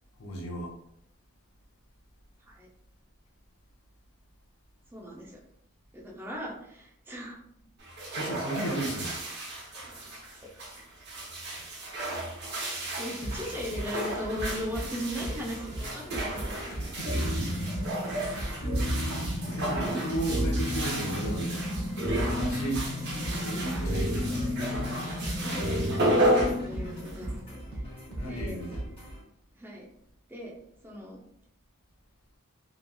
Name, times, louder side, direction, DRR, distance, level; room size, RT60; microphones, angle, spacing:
voice 1, 0.2-0.7 8.1-9.2 16.8-17.1 17.4-17.5 17.8-17.9 19.4-21.7 22.3-22.9 23.4-24.5 28.2-28.8, right 1 dB, 70° left, 0 dB, 0.6 m, -34 dB
voice 2, 4.9-5.4 5.9-7.4 9.8-9.9 10.4-10.5 12.8-17.6 23.0-23.3 23.6-24.6 25.0-27.6 28.2-28.6 29.6-29.9 30.3-30.5 30.8-31.2, equal, 10° right, -2 dB, 0.4 m, -39 dB
sound 1, 7.8-27.4, right 1 dB, 50° right, 0.8 m, -33 dB
sound 2, 13.2-29.2, right 1 dB, 25° left, 1.0 m, -39 dB
sound 3, 17.0-27.0, left 1 dB, 50° left, 1.1 m, -32 dB
2.9 x 2.3 x 2.2 m, 0.72 s
head